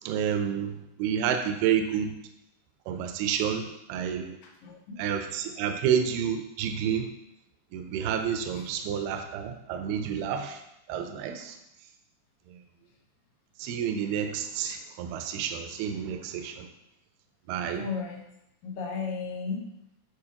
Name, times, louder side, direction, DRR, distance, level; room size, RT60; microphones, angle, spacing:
voice 1, 0.1-0.7 1.0-2.1 2.9-4.4 5.0-7.1 7.7-10.6 10.9-11.6 13.6-16.7 17.5-17.8, right 8 dB, 85° right, 6 dB, 2.5 m, -29 dB
voice 2, 4.4-5.0 8.5-8.6 17.7-18.2 18.6-19.6, left 5 dB, 70° left, 0 dB, 2.7 m, -34 dB
11.0 x 4.4 x 2.9 m, 0.82 s
omnidirectional pair, 4.4 m